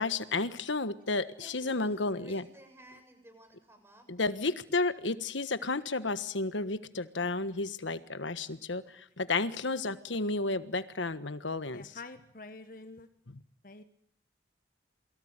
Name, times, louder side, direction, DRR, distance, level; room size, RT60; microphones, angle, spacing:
voice 1, 0.0-2.4 4.1-11.9, left 3 dB, 85° left, 1.4 m, -32 dB
voice 2, 1.4-4.1, right 1 dB, 15° right, 6.9 m, -55 dB
voice 3, 11.7-13.1 13.6-13.8, left 3 dB, 45° left, 1.5 m, -47 dB
28.5 x 22.5 x 9.0 m
head